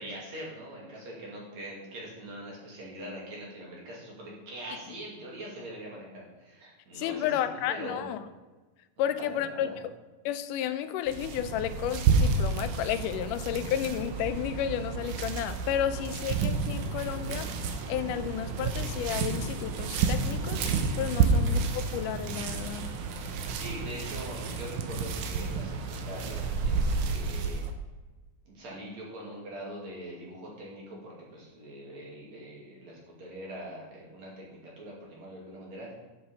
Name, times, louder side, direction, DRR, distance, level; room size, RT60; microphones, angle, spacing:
voice 1, 0.0-8.1 9.0-9.8 21.2-21.3 23.5-27.6 28.5-35.9, right 1 dB, 60° right, -4 dB, 3.7 m, -43 dB
voice 2, 7.0-8.2 9.0-9.7 10.3-20.6 21.0-22.9, left 10 dB, 90° left, 11 dB, 2.1 m, -32 dB
sound 1, 11.1-27.7, right 4 dB, 75° right, 2.3 m, -30 dB
7.6 x 7.5 x 5.7 m, 1.2 s
omnidirectional pair, 3.6 m